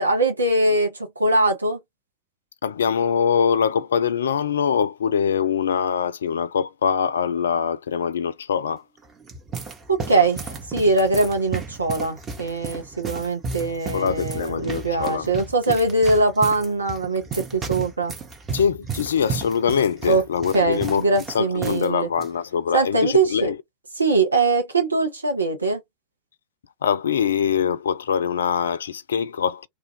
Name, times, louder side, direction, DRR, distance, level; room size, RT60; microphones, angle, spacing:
voice 1, 0.0-1.8 9.9-18.1 20.1-20.2 20.5-22.1 22.7-23.5 24.0-25.8, right 2 dB, 80° right, 0.7 m, -22 dB
voice 2, 2.6-8.8 13.9-15.3 15.7-15.8 18.5-21.1 21.3-23.6 26.8-29.7, left 7 dB, 65° left, 0.3 m, -23 dB
sound 1, 9.0-21.9 22.1-22.3 23.0-23.3, right 5 dB, 20° right, 0.7 m, -34 dB
2.3 x 2.1 x 2.7 m
figure-of-eight pair, 90°, 0 cm